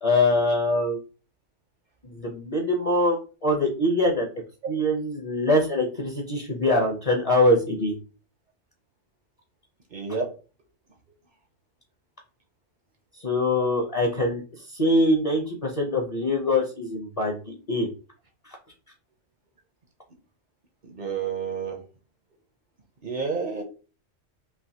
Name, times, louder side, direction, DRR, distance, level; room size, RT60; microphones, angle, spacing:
voice 1, 0.0-1.0 2.0-4.3 4.7-7.9 13.2-14.4 14.7-17.9 18.4-18.6, left 1 dB, 40° left, 0 dB, 0.6 m, -23 dB
voice 2, 9.9-10.3 20.8-21.8 23.0-23.6, right 5 dB, 50° right, 3 dB, 0.6 m, -29 dB
3.3 x 2.6 x 2.7 m, 0.35 s
omnidirectional pair, 1.3 m